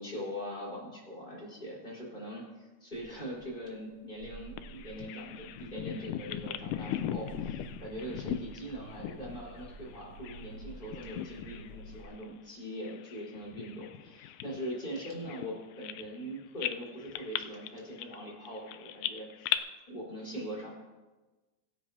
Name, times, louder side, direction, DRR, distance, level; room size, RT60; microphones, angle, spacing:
voice 1, 0.0-19.5 19.9-20.7, equal, 15° left, -4 dB, 4.3 m, -42 dB
sound 1, 2.9-12.1, right 2 dB, 80° right, 3.9 m, -50 dB
Bird vocalization bird call bird song, 4.6-10.5 10.8-11.7 12.0-12.2 12.8-16.3 16.6-19.6, left 12 dB, 85° left, 2.0 m, -38 dB
25.0 x 9.1 x 2.8 m, 1.2 s
omnidirectional pair, 3.6 m